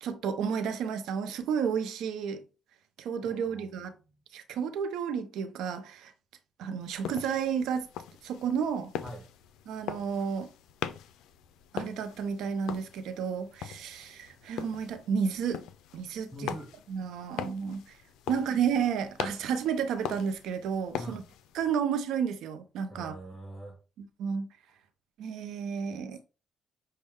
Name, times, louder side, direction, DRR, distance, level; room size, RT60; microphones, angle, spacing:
voice 1, 0.0-2.4 3.0-3.9 4.3-6.1 6.6-7.9 8.2-8.9 9.7-10.5 11.7-15.6 15.9-16.6 16.9-18.0 18.3-21.2 21.5-23.1 24.0-24.5 25.2-26.2, right 7 dB, 85° right, 0.7 m, -31 dB
voice 2, 3.2-3.8 9.0-9.2 16.3-16.7 20.9-21.2 22.9-23.8, equal, 10° left, 1.2 m, -43 dB
sound 1, 6.8-21.7, left 9 dB, 90° left, 0.4 m, -42 dB
6.4 x 2.2 x 3.5 m
cardioid pair, 90°, 0 cm